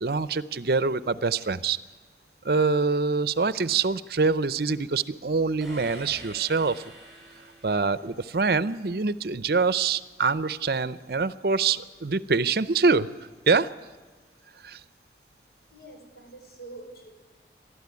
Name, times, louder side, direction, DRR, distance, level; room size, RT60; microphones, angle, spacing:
voice 1, 0.0-1.8 2.4-6.8 7.6-13.1 13.5-13.7 14.6-14.8, right 4 dB, 60° right, 16 dB, 0.6 m, -25 dB
sound 1, 5.6-8.4, right 1 dB, ahead, 6.1 m, -46 dB
voice 2, 15.7-17.1, right 2 dB, 65° left, 3 dB, 5.2 m, -45 dB
29.5 x 12.5 x 9.6 m, 1.4 s
head